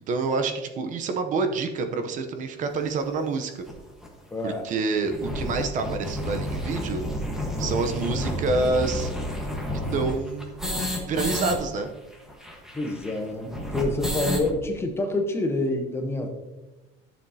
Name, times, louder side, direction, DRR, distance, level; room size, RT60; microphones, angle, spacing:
voice 1, 0.0-3.6 4.4-7.0 7.6-9.1 9.9-10.6 11.1-11.9, right 3 dB, 45° right, 7 dB, 0.8 m, -27 dB
sound 1, 2.9-3.0 3.7-3.8 4.0-4.1 4.4-4.5 4.9-11.6 11.8-11.9 12.1-14.5, equal, 5° right, 1.3 m, -30 dB
voice 2, 4.3-4.6 12.7-16.3, left 2 dB, 15° left, 4 dB, 0.9 m, -27 dB
10.5 x 7.1 x 2.8 m, 1.1 s
cardioid pair, 155°, 19 cm